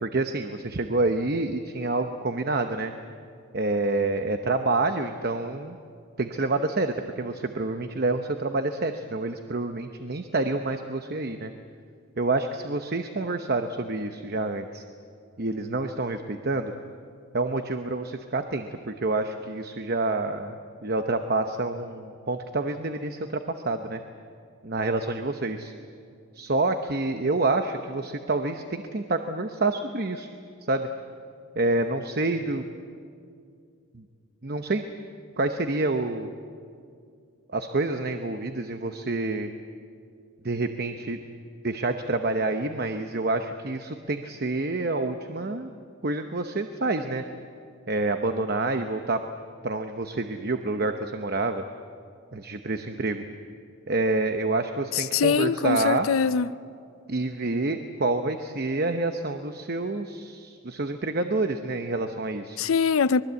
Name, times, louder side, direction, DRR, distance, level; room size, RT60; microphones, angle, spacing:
voice 1, 0.0-2.9 3.5-5.8 6.2-11.5 12.2-14.8 15.4-16.7 17.3-24.0 24.6-25.7 26.3-30.3 30.7-30.9 31.5-32.7 33.9-34.0 34.4-34.9 35.4-36.3 37.5-39.5 40.4-41.2 41.6-45.7 46.0-47.2 47.9-49.2 49.6-51.6 52.3-53.2 53.9-56.1 57.1-62.6, right 2 dB, 45° right, 0.9 m, -28 dB
voice 2, 54.9-56.5 62.6-63.2, left 6 dB, 80° left, 0.5 m, -23 dB
25.0 x 21.5 x 8.2 m
head